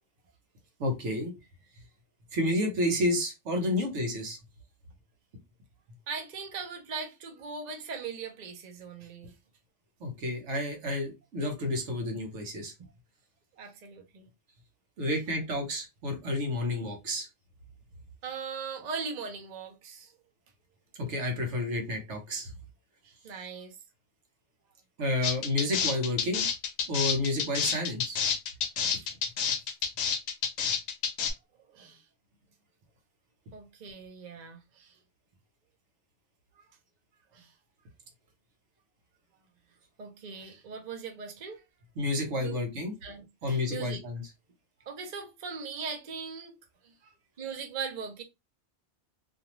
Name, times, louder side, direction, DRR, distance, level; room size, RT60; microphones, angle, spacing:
voice 1, 0.8-1.3 2.3-4.4 10.0-12.7 15.0-17.3 21.0-22.5 25.0-26.5 26.9-28.2 42.0-42.9 43.4-44.2, left 1 dB, 90° right, 1.2 m, -30 dB
voice 2, 6.1-9.3 13.6-14.3 18.2-20.1 23.0-23.8 28.9-29.2 31.7-32.0 33.5-35.0 37.3-37.5 40.0-41.6 42.4-42.6 43.0-44.0 44.8-46.5 46.8-48.2, right 5 dB, 45° right, 0.7 m, -40 dB
sound 1, 25.2-31.3, left 7 dB, 85° left, 0.9 m, -29 dB
2.5 x 2.3 x 3.0 m
omnidirectional pair, 1.2 m